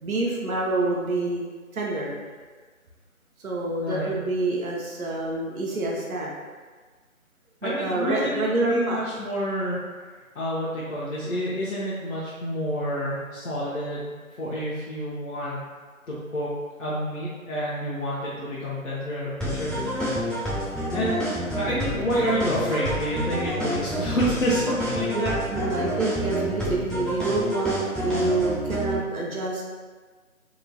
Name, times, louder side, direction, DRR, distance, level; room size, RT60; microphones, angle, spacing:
voice 1, 0.0-1.4 1.7-2.1 3.4-6.3 7.6-9.0 25.0-29.6, right 2 dB, 75° right, -3 dB, 0.7 m, -27 dB
voice 2, 3.8-4.1 7.6-9.8 10.1-15.6 16.1-16.5 16.8-20.4 20.9-21.3 21.5-25.4, equal, 65° left, -8 dB, 0.7 m, -29 dB
sound 1, 19.4-29.0, equal, ahead, 0.3 m, -29 dB
2.9 x 2.2 x 2.6 m, 1.5 s
figure-of-eight pair, 165°, 42 cm